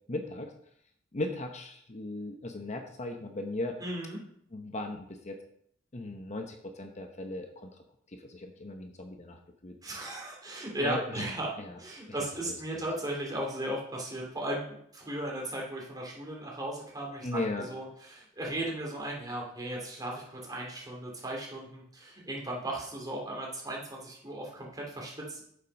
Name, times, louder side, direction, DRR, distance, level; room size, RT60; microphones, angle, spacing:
voice 1, 0.1-0.5 1.1-3.8 4.5-5.4 5.9-7.7 8.1-9.8 10.8-11.2 11.6-11.8 12.5-12.8 17.2-17.7, left 2 dB, 35° left, 5 dB, 0.8 m, -37 dB
voice 2, 3.8-4.2 9.8-11.5 11.8-25.4, right 1 dB, 20° right, -2 dB, 2.6 m, -36 dB
8.3 x 7.4 x 5.3 m, 0.69 s
head